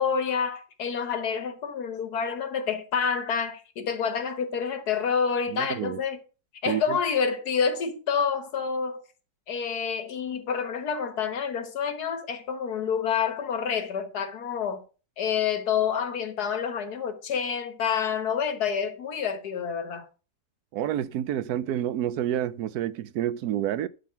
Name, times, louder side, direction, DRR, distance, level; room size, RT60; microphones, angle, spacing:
voice 1, 0.0-6.2 6.6-9.0 9.5-14.8 15.2-20.1, left 6 dB, 85° left, 1.8 m, -28 dB
voice 2, 5.5-6.0 6.7-6.8 20.7-23.9, right 11 dB, 85° right, 1.2 m, -28 dB
11.5 x 4.0 x 5.7 m
omnidirectional pair, 1.6 m